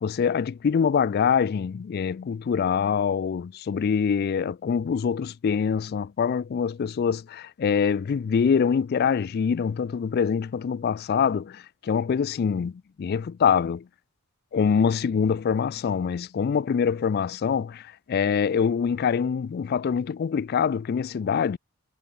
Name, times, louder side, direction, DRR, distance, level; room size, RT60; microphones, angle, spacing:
voice 1, 0.0-12.7 13.0-13.8 14.5-21.6, left 6 dB, 50° left, 0.3 m, -24 dB
head